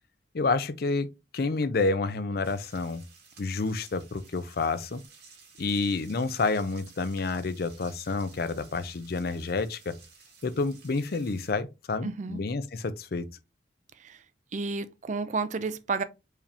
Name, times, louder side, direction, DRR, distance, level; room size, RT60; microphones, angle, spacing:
voice 1, 0.3-1.1 1.3-3.0 3.4-5.0 5.6-10.0 10.4-13.2, left 3 dB, 55° left, 0.5 m, -29 dB
sound 1, 2.4-11.5, right 5 dB, 60° right, 2.1 m, -55 dB
voice 2, 12.0-12.4 14.0-14.2 14.5-16.0, right 4 dB, 40° right, 0.4 m, -31 dB
4.8 x 3.4 x 2.8 m
head